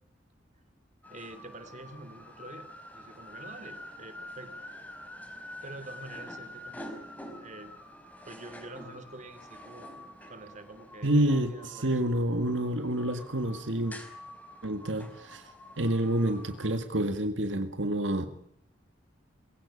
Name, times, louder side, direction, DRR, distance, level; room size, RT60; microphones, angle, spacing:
sound 1, 1.0-16.8, left 1 dB, 10° left, 4.1 m, -47 dB
voice 1, 1.1-4.5 5.6-7.0 7.4-7.7 8.2-12.1, right 2 dB, 40° right, 10 dB, 2.9 m, -47 dB
voice 2, 11.0-14.0 14.6-15.5 15.8-18.3, right 1 dB, 80° right, 8 dB, 1.9 m, -28 dB
22.5 x 16.5 x 10.0 m, 0.69 s
head